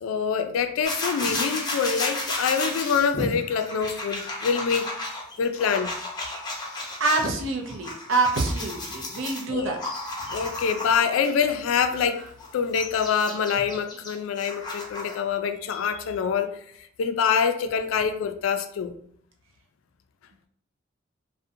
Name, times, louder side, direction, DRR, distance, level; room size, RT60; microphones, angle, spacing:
voice 1, 0.0-4.9 5.4-5.9 9.5-9.9 10.3-12.2 12.5-16.6 17.0-18.9, left 6 dB, 85° left, 0.3 m, -25 dB
sound 1, 0.8-7.3 7.7-11.3 11.9-15.2, left 2 dB, 20° left, 0.5 m, -33 dB
voice 2, 7.0-9.8, right 3 dB, 80° right, 0.5 m, -26 dB
2.5 x 2.1 x 2.6 m
head